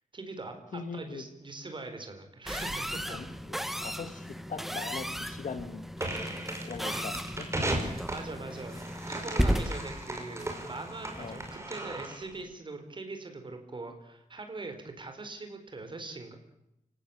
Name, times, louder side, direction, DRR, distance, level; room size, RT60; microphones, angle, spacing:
voice 1, 0.1-3.2 6.9-7.1 7.8-8.8 9.1-16.4, right 3 dB, 40° right, 6 dB, 4.6 m, -42 dB
voice 2, 0.7-1.3 3.1-5.9 6.6-7.5 11.2-11.4, left 5 dB, 75° left, 10 dB, 2.2 m, -41 dB
sound 1, 2.5-11.6, equal, ahead, 1.3 m, -35 dB
sound 2, 6.0-12.3, right 1 dB, 20° right, 5.6 m, -36 dB
29.5 x 18.0 x 8.8 m, 0.87 s
wide cardioid pair, 155°, 13 cm